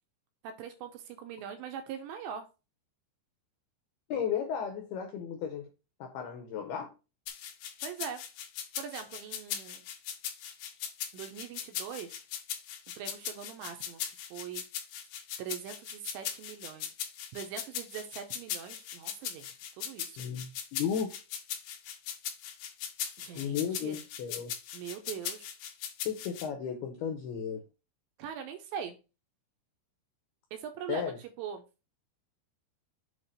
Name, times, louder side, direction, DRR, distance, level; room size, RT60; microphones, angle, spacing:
voice 1, 0.4-2.5 7.8-8.2 8.8-9.9 11.1-12.2 13.0-14.6 15.4-17.0 17.3-20.2 23.2-24.0 24.7-25.5 28.2-29.0 30.5-31.6, right 8 dB, 80° right, 6 dB, 2.7 m, -42 dB
voice 2, 4.1-5.7 6.0-6.9 20.2-21.1 23.4-24.5 26.1-27.6 30.9-31.2, left 8 dB, 90° left, 5 dB, 2.2 m, -34 dB
sound 1, 7.3-26.5, left 9 dB, 70° left, 2.8 m, -39 dB
8.1 x 2.9 x 5.5 m, 0.30 s
omnidirectional pair, 5.6 m